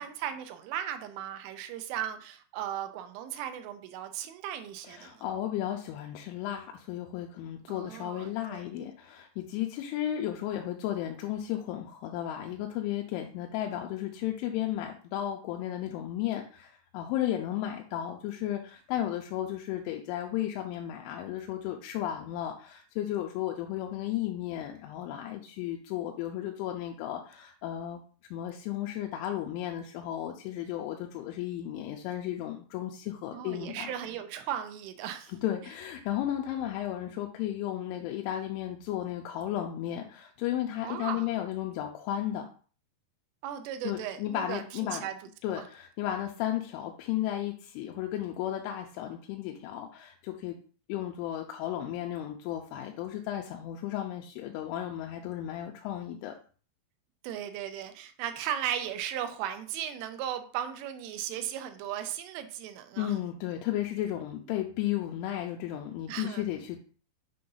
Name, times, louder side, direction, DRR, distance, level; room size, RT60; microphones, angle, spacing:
voice 1, 0.0-5.2 7.7-8.9 33.3-35.3 36.5-36.6 40.8-41.3 43.4-45.1 45.5-45.6 57.2-63.1 66.1-66.4, right 10 dB, 85° right, 8 dB, 3.1 m, -37 dB
voice 2, 4.8-28.0 28.3-33.9 35.3-42.5 43.8-45.0 45.4-50.6 50.9-56.3 63.0-66.8, left 12 dB, 85° left, 2 dB, 3.0 m, -34 dB
7.7 x 2.6 x 5.4 m, 0.40 s
omnidirectional pair, 5.6 m